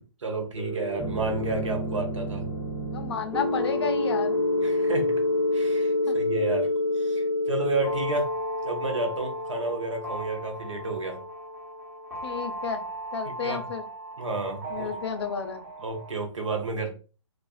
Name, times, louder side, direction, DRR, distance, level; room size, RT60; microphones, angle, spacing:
voice 1, 0.2-2.5 4.6-5.1 5.5-6.7 7.0-8.3 8.6-11.2 13.4-13.6 14.2-14.9 15.8-16.9, right 3 dB, 80° right, 3 dB, 0.8 m, -31 dB
sound 1, 0.6-16.1, left 1 dB, 5° right, 0.7 m, -29 dB
voice 2, 2.9-4.4 6.1-6.2 12.2-13.8 14.7-15.6, left 6 dB, 60° left, 7 dB, 0.5 m, -32 dB
2.4 x 2.3 x 2.3 m, 0.35 s
hypercardioid pair, 135°, 16 cm